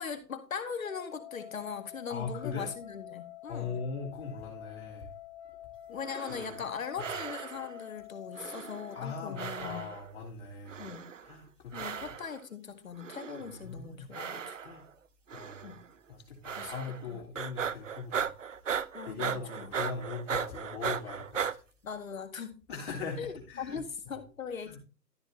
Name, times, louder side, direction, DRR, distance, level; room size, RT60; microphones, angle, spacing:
voice 1, 0.0-3.8 5.9-9.8 10.8-11.1 11.7-14.6 15.6-15.8 16.6-16.7 17.1-17.2 18.9-19.7 21.8-22.5 23.2-24.8, left 6 dB, 55° left, 8 dB, 2.0 m, -40 dB
sound 1, 0.8-9.5, left 12 dB, 20° left, 2.4 m, -48 dB
voice 2, 2.1-2.7 3.5-5.1 8.9-10.8 11.2-12.1 13.4-14.0 14.6-14.8 15.3-15.8 16.1-18.3 18.6-18.8 19.0-21.5 22.7-23.2 23.5-23.8 24.6-24.8, left 5 dB, 40° left, -2 dB, 3.4 m, -40 dB
sound 2, 6.0-6.7 7.0-7.8 8.3-9.1 9.4-10.1 10.7-11.3 11.7-12.4 13.0-13.6 14.1-14.9 15.3-15.8 16.4-17.1 17.3-21.6, right 7 dB, 50° right, 0.6 m, -37 dB
13.0 x 7.0 x 2.8 m, 0.35 s
hypercardioid pair, 160°, 50 cm